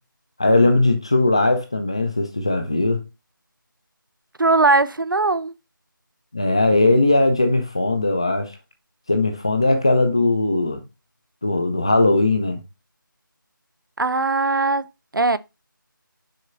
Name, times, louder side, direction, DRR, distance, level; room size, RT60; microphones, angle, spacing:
voice 1, 0.4-3.0 6.3-8.5 9.1-10.8 11.4-12.6, left 2 dB, 15° left, 0.5 m, -19 dB
voice 2, 4.4-5.5 14.0-14.9 15.1-15.4, right 3 dB, 70° right, 0.6 m, -19 dB
6.5 x 4.4 x 3.8 m
figure-of-eight pair, 170°, 11 cm